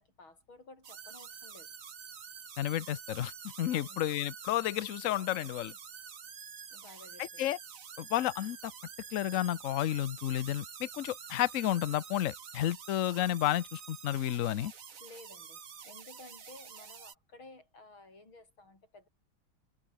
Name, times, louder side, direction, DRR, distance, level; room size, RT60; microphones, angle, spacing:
voice 1, 0.0-1.7 3.7-4.0 6.7-7.5 15.0-19.1, left 2 dB, 65° left, 7.8 m, -54 dB
sound 1, 0.8-17.1, right 7 dB, 45° right, 1.6 m, -48 dB
voice 2, 2.6-3.3 3.6-5.7 7.2-7.6 8.0-8.7 9.1-14.7, left 13 dB, 90° left, 0.7 m, -31 dB
omnidirectional pair, 2.4 m